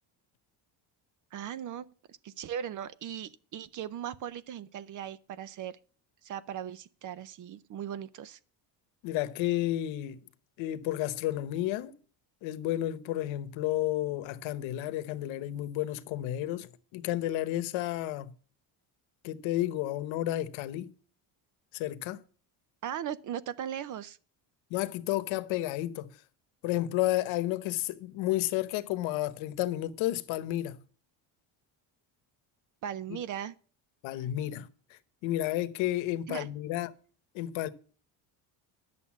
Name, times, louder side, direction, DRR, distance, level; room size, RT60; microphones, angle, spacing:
voice 1, 1.3-5.8 6.2-8.4 22.8-24.2 32.8-33.6 36.3-36.5, right 9 dB, 40° right, 0.6 m, -38 dB
voice 2, 9.0-10.2 10.6-11.9 12.4-18.3 19.2-20.9 21.7-22.2 24.7-26.1 26.6-30.8 34.0-36.9 37.3-37.7, left 14 dB, 85° left, 1.0 m, -31 dB
11.0 x 6.8 x 7.2 m
cardioid pair, 160°, 46 cm